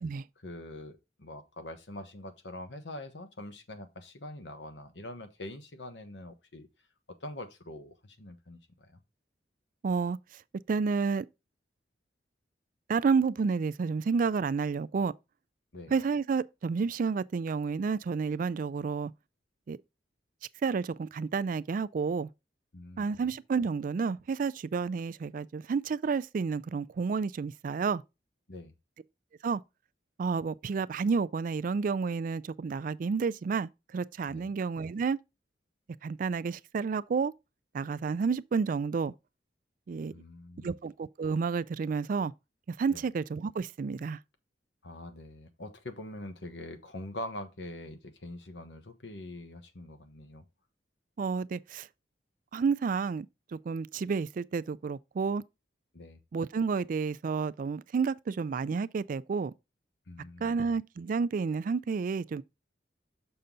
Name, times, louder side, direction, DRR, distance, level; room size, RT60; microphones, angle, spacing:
voice 1, 0.4-6.7 7.2-9.0 15.7-15.9 22.7-23.2 28.5-28.7 34.3-34.5 40.1-40.7 42.9-43.0 44.8-50.4 55.9-56.2 60.1-60.6, left 1 dB, 75° left, 1.2 m, -44 dB
voice 2, 9.8-10.2 10.7-11.3 12.9-15.1 15.9-19.1 19.7-19.8 20.6-22.3 23.0-28.0 29.4-29.6 30.2-35.2 36.0-37.3 37.7-39.1 39.9-40.1 40.6-42.3 42.7-44.2 51.2-51.9 52.5-53.3 53.5-55.4 56.3-59.5 60.4-62.4, right 5 dB, 50° right, 0.3 m, -30 dB
6.8 x 5.5 x 3.8 m
head